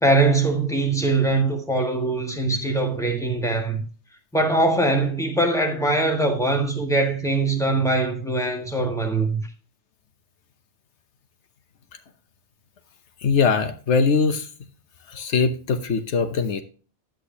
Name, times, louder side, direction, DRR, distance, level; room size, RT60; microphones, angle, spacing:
voice 1, 0.0-3.8 4.3-9.4, right 2 dB, 5° left, 1.7 m, -22 dB
voice 2, 13.2-14.5 15.1-16.6, left 5 dB, 85° left, 1.2 m, -21 dB
10.5 x 8.4 x 2.8 m
omnidirectional pair, 1.2 m